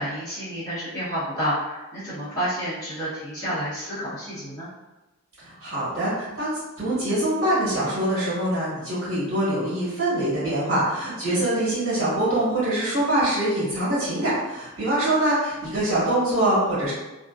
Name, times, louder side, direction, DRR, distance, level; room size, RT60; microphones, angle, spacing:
voice 1, 0.0-4.7 11.2-11.4, equal, 15° left, -13 dB, 0.8 m, -30 dB
voice 2, 5.4-6.5 6.8-16.9, right 1 dB, 65° right, -10 dB, 1.3 m, -24 dB
2.4 x 2.2 x 2.3 m, 1.1 s
head